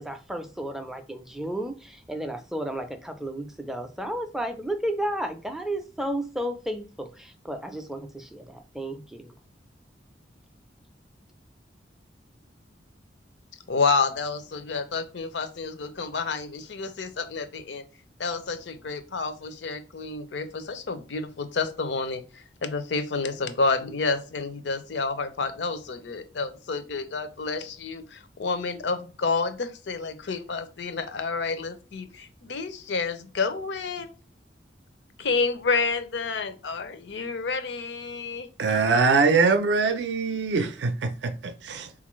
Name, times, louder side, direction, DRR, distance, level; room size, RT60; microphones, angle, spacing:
voice 1, 0.0-9.3, right 1 dB, ahead, 0.3 m, -33 dB
voice 2, 13.7-17.8 18.2-34.1 35.2-38.5, left 4 dB, 75° left, 0.5 m, -29 dB
voice 3, 38.6-41.9, right 4 dB, 75° right, 0.4 m, -23 dB
3.8 x 2.5 x 3.0 m
head